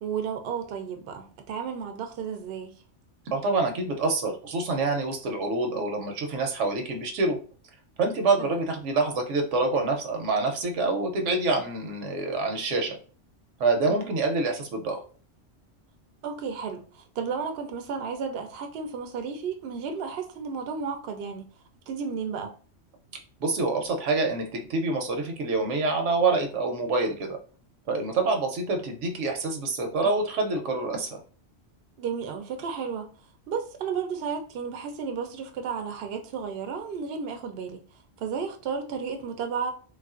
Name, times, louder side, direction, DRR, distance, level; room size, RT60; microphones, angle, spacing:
voice 1, 0.0-2.7 8.4-8.6 13.8-14.1 16.2-21.5 21.9-22.5 32.0-33.1 33.5-37.8 38.2-39.7, right 6 dB, 65° right, 5 dB, 0.7 m, -33 dB
voice 2, 3.3-7.4 8.0-13.0 13.6-15.0 23.4-27.4 27.9-31.2, right 3 dB, 80° right, 4 dB, 1.0 m, -26 dB
3.3 x 2.4 x 2.4 m, 0.39 s
omnidirectional pair, 1.2 m